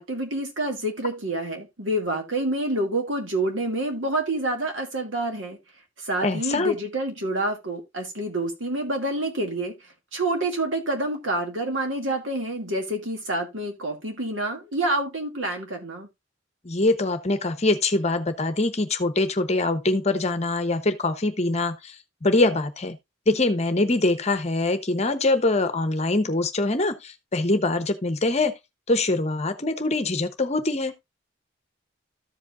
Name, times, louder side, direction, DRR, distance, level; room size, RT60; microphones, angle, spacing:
voice 1, 0.0-5.6 6.0-9.7 10.1-16.1, right 1 dB, 75° right, 2.3 m, -27 dB
voice 2, 6.2-6.8 16.6-21.9 22.2-23.0 23.3-28.5 28.9-30.9, left 2 dB, 35° left, 0.9 m, -23 dB
14.0 x 5.1 x 2.5 m
head